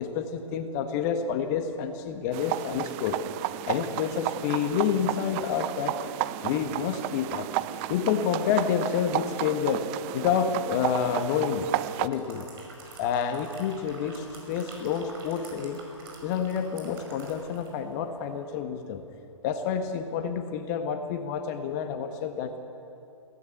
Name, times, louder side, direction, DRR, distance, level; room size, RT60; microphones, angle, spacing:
voice 1, 0.0-3.2 3.7-6.0 6.4-7.5 7.9-11.7 12.0-12.5 13.0-15.8 16.2-19.0 19.4-22.6, left 7 dB, 35° left, 7 dB, 1.4 m, -29 dB
sound 1, 2.3-12.1, right 15 dB, 25° right, 0.5 m, -32 dB
sound 2, 12.0-17.8 18.1-18.3, right 3 dB, 45° right, 5.6 m, -47 dB
22.0 x 17.0 x 8.0 m, 2.8 s
figure-of-eight pair, 130°, 17 cm